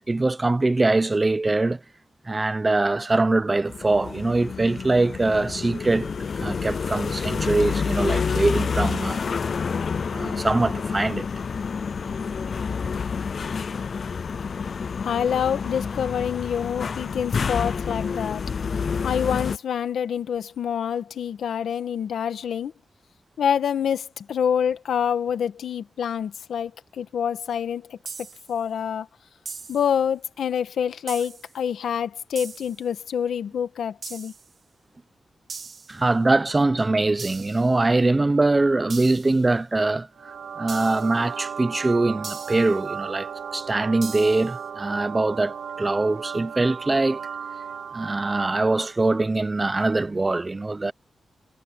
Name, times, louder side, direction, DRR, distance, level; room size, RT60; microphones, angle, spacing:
voice 1, 0.1-1.8 2.3-9.2 10.0-11.3 35.9-40.1 40.6-47.2 47.9-50.9, right 2 dB, 20° right, 0.8 m, -23 dB
sound 1, 3.7-19.6, left 5 dB, 50° left, 0.4 m, -28 dB
voice 2, 15.0-18.4 19.0-22.7 23.4-28.0 28.5-29.1 29.7-34.3, left 8 dB, 85° left, 1.5 m, -26 dB
sound 2, 28.1-28.6 29.5-30.0 31.1-31.6 32.4-32.8 34.0-34.5 35.5-36.0 37.2-37.7 38.9-39.4 40.7-41.2 42.2-42.8 44.0-44.6, right 5 dB, 45° right, 2.2 m, -39 dB
sound 3, 40.2-49.0, right 7 dB, 70° right, 0.7 m, -35 dB
wide cardioid pair, 125°, 0 cm